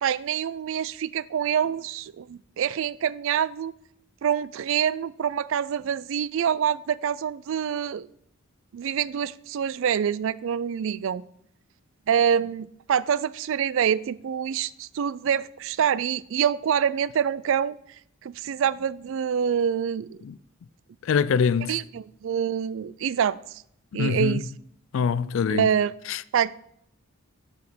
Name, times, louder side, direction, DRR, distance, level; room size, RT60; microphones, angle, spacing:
voice 1, 0.0-3.7 4.2-8.1 8.7-11.2 12.1-17.8 18.2-20.2 21.7-23.4 23.9-24.5 25.5-26.0 26.3-26.6, right 8 dB, 60° right, 0.3 m, -26 dB
voice 2, 21.0-21.8 23.9-24.4 24.9-25.7 26.1-26.2, left 6 dB, 60° left, 0.3 m, -24 dB
7.0 x 5.2 x 6.1 m
head